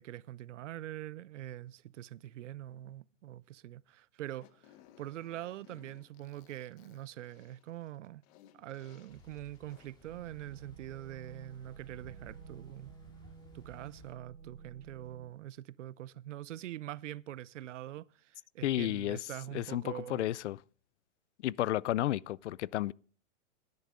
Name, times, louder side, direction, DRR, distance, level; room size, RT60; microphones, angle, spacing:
voice 1, 0.0-8.2 8.5-12.9 13.5-20.3, right 13 dB, 75° right, 0.6 m, -44 dB
Fart, 4.3-10.1, left 11 dB, 30° left, 0.8 m, -62 dB
sound 1, 9.1-14.1, equal, 10° left, 2.3 m, -60 dB
sound 2, 10.0-15.3, right 6 dB, 50° right, 2.1 m, -52 dB
voice 2, 18.6-19.2 19.5-20.6 21.4-22.9, left 14 dB, 70° left, 0.5 m, -32 dB
18.0 x 10.5 x 3.7 m
hypercardioid pair, 150°, 37 cm